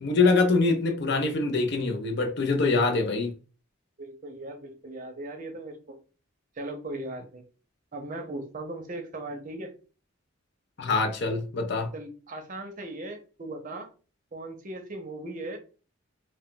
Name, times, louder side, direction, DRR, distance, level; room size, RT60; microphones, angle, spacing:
voice 1, 0.0-3.3 10.8-11.9, left 3 dB, 55° left, 0.5 m, -24 dB
voice 2, 4.0-6.0 6.5-7.4 7.9-9.7 11.9-13.9 14.3-15.6, right 2 dB, 40° right, 0.6 m, -38 dB
2.3 x 2.2 x 3.7 m
head